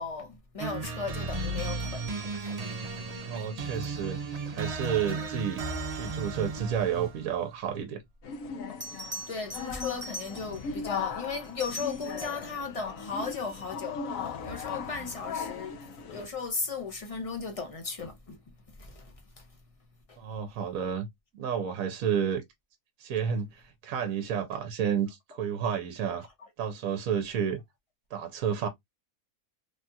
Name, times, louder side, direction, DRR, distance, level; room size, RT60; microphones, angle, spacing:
voice 1, 0.0-2.1 2.4-2.8 5.1-5.3 9.0-15.8 16.1-18.4 18.7-19.5 20.1-20.2, left 4 dB, 40° left, 0.5 m, -36 dB
sound 1, 0.6-7.3, right 3 dB, 55° right, 0.4 m, -35 dB
voice 2, 3.3-4.2 4.5-8.0 20.2-21.1 21.3-22.4 23.0-26.3 26.6-27.6 28.1-28.7, right 8 dB, 70° right, 1.0 m, -31 dB
sound 2, 8.2-16.3, left 6 dB, 65° left, 1.0 m, -38 dB
Bell, 8.2-8.3 8.8-10.7 11.4-12.5 15.2-15.4, equal, 20° right, 0.9 m, -42 dB
3.2 x 2.4 x 2.7 m
omnidirectional pair, 1.6 m